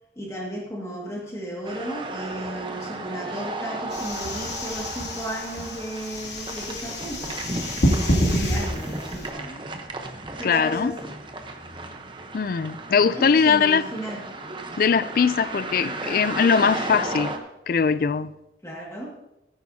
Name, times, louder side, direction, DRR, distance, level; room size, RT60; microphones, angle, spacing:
voice 1, 0.2-7.4 7.8-9.7 10.4-11.2 13.1-14.2 18.6-19.1, right 1 dB, 15° left, 2.0 m, -34 dB
sound 1, 1.6-17.4, right 2 dB, 25° right, 0.9 m, -34 dB
sound 2, 3.9-9.3, equal, 80° left, 2.5 m, -27 dB
voice 2, 10.4-10.9 12.3-13.8 14.8-17.4 17.7-18.3, left 6 dB, 50° left, 0.3 m, -21 dB
16.0 x 9.6 x 2.8 m
head